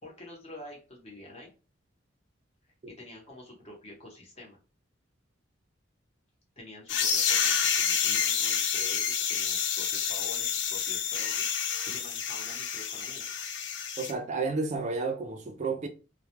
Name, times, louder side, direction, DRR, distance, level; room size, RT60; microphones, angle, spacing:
voice 1, 0.0-1.5 3.0-4.6 6.6-13.3, left 1 dB, 30° left, 0.8 m, -47 dB
sound 1, 6.9-14.1, left 7 dB, 60° left, 0.4 m, -29 dB
voice 2, 14.0-15.9, right 4 dB, 35° right, 0.3 m, -31 dB
2.2 x 2.1 x 2.8 m
head